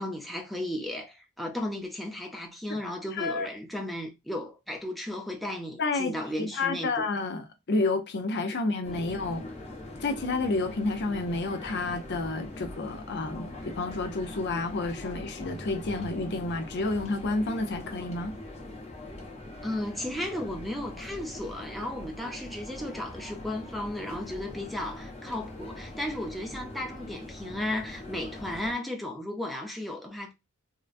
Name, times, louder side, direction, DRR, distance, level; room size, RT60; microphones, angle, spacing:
voice 1, 0.0-7.1 19.6-30.3, left 1 dB, ahead, 0.6 m, -35 dB
voice 2, 3.1-3.5 5.8-9.4 10.0-18.3, left 3 dB, 50° left, 0.6 m, -30 dB
sound 1, 8.8-28.7, left 1 dB, 30° left, 1.0 m, -42 dB
3.7 x 2.1 x 2.4 m
head